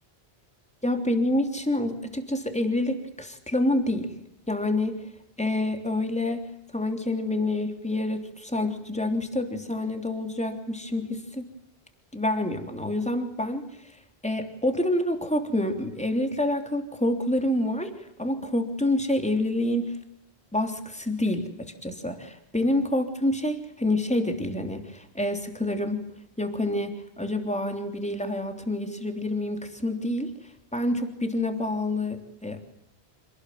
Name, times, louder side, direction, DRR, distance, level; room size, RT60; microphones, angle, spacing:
voice 1, 0.8-4.1 4.5-5.1 5.4-6.5 6.7-11.5 12.1-14.0 14.2-20.0 20.5-26.0 26.4-32.6, left 1 dB, 5° left, 5 dB, 3.2 m, -27 dB
27.5 x 19.0 x 9.3 m, 0.76 s
omnidirectional pair, 1.1 m